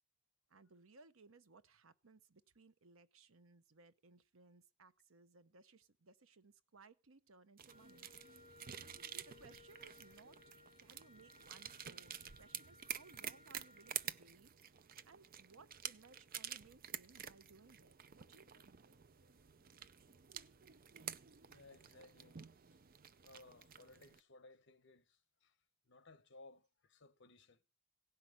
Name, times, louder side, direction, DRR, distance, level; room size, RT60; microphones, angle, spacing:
voice 1, 0.5-8.1 9.1-10.4 10.8-18.8, right 4 dB, 90° right, 0.9 m, -64 dB
sound 1, 7.6-24.2, right 9 dB, 45° right, 0.6 m, -50 dB
Wind instrument woodwind instrument, 7.7-14.1, left 2 dB, 25° left, 2.2 m, -64 dB
voice 2, 21.5-22.4 23.2-25.5 25.9-27.6, left 2 dB, 60° left, 1.2 m, -61 dB
17.0 x 5.8 x 9.3 m
head